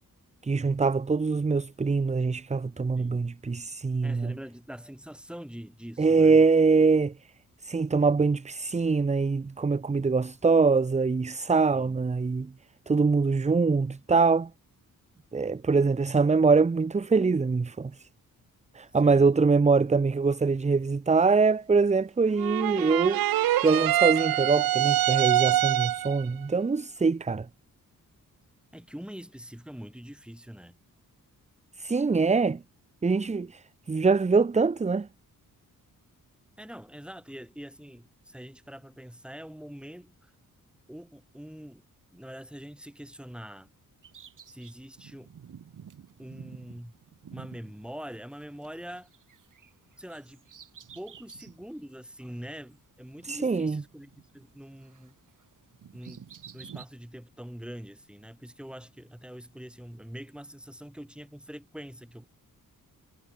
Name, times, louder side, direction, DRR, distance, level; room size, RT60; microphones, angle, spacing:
voice 1, 0.4-4.3 6.0-7.1 7.6-12.5 12.9-14.5 15.3-17.9 18.7-23.2 23.6-27.5 31.8-32.6 33.0-33.6 33.9-35.1 53.3-53.8, right 4 dB, 20° right, 0.7 m, -23 dB
voice 2, 3.0-3.3 4.0-6.4 11.7-12.0 19.0-19.3 28.7-30.8 36.6-40.3 40.9-41.8 42.1-43.7 44.5-45.3 46.2-47.0 47.3-49.1 50.0-50.4 50.9-55.1 55.9-56.3 56.5-62.2, equal, 5° right, 7.4 m, -44 dB
sound 1, 22.4-26.2, right 13 dB, 85° right, 0.7 m, -25 dB
Bird vocalization bird call bird song, 44.0-48.7 48.9-51.7 52.1-52.2 53.1-54.6 54.8-56.9, right 8 dB, 60° right, 3.4 m, -50 dB
wide cardioid pair, 115°, 34 cm